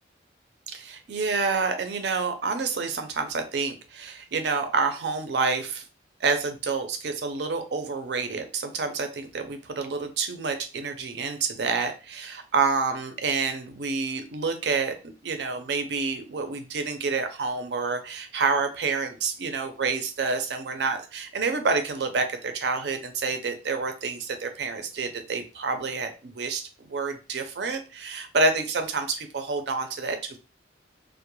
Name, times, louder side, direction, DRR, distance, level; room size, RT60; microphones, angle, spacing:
voice 1, 0.7-5.8 6.2-15.0 15.2-30.4, right 4 dB, 65° right, 7 dB, 0.5 m, -28 dB
2.2 x 2.1 x 3.0 m, 0.33 s
head